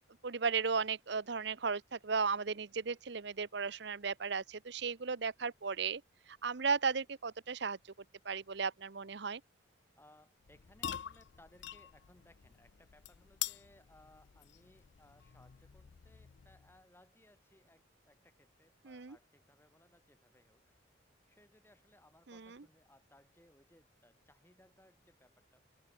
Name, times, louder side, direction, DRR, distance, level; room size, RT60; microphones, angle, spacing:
voice 1, 0.2-6.0 6.3-7.8 8.2-9.4 18.8-19.2 22.3-22.6, right 5 dB, 55° right, 0.7 m, -35 dB
voice 2, 10.0-25.6, left 1 dB, 10° left, 7.7 m, -65 dB
sound 1, 10.4-16.8, left 11 dB, 60° left, 0.4 m, -46 dB
head